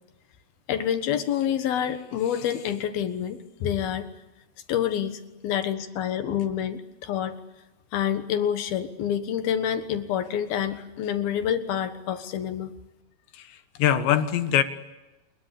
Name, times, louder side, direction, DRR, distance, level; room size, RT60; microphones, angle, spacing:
voice 1, 0.7-4.1 4.7-7.4 7.9-12.7, left 9 dB, 65° left, 9 dB, 3.0 m, -27 dB
voice 2, 13.3-14.6, left 10 dB, 80° left, 10 dB, 3.8 m, -23 dB
29.0 x 21.5 x 8.4 m, 1.0 s
omnidirectional pair, 5.0 m